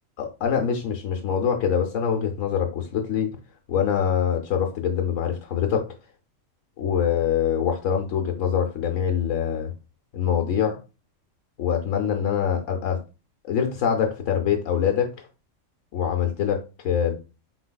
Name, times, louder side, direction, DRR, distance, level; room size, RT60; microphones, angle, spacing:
voice 1, 0.2-3.3 3.7-5.9 6.8-9.7 10.1-10.8 11.6-13.0 13.4-15.1 15.9-17.2, left 8 dB, 75° left, 4 dB, 1.0 m, -24 dB
4.5 x 4.0 x 2.2 m, 0.30 s
omnidirectional pair, 1.3 m